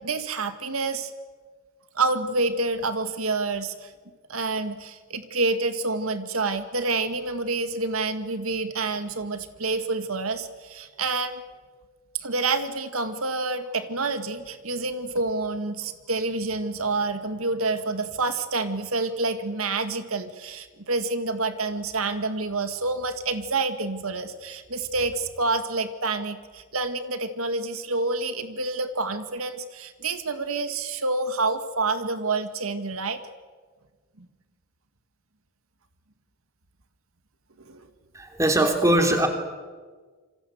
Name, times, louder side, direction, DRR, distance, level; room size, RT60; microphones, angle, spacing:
voice 1, 0.0-1.1 2.0-3.9 4.3-11.4 12.2-33.2 34.2-34.3 37.7-37.8, right 3 dB, 90° right, 9 dB, 2.0 m, -28 dB
voice 2, 38.1-39.3, right 1 dB, 15° right, 4 dB, 3.3 m, -21 dB
28.0 x 25.5 x 8.0 m, 1.5 s
head